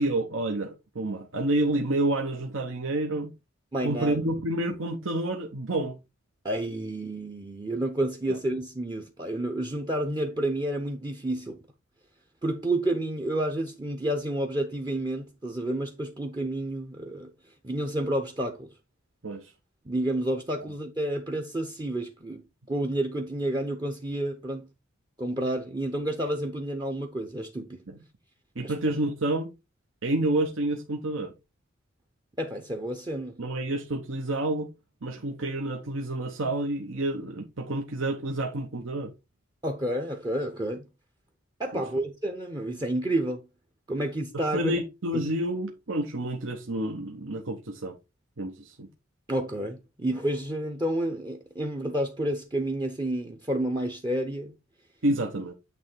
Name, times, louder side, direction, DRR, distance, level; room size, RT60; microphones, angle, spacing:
voice 1, 0.0-3.3 3.8-6.0 8.3-8.4 19.2-19.5 27.9-28.0 28.6-29.5 30.0-31.3 33.4-34.7 35.0-39.1 41.7-41.8 44.3-48.0 48.4-48.9 55.0-55.5, right 1 dB, 70° right, 1.0 m, -29 dB
voice 2, 3.7-4.3 6.4-11.6 12.4-17.3 17.6-18.7 19.8-22.4 22.7-24.7 25.2-27.8 28.6-28.7 32.4-33.4 39.6-40.9 41.6-43.4 43.9-44.8 45.1-45.2 49.3-54.5, right 1 dB, 20° right, 0.8 m, -30 dB
9.0 x 3.3 x 4.4 m
head